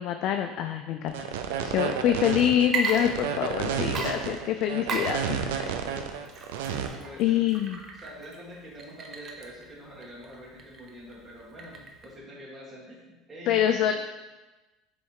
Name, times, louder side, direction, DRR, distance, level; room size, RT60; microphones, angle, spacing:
voice 1, 0.0-1.3 1.6-5.8 7.2-7.8 13.5-13.9, left 10 dB, 60° left, 6 dB, 0.4 m, -26 dB
sound 1, 1.1-6.9, right 7 dB, 90° right, 0.5 m, -31 dB
Water / Liquid, 2.6-3.6 3.9-12.2, right 4 dB, 40° right, 0.8 m, -36 dB
voice 2, 6.8-7.6 7.9-13.9, equal, 15° right, -6 dB, 1.6 m, -45 dB
6.9 x 3.2 x 4.7 m, 1.1 s
supercardioid pair, 115°, 0 cm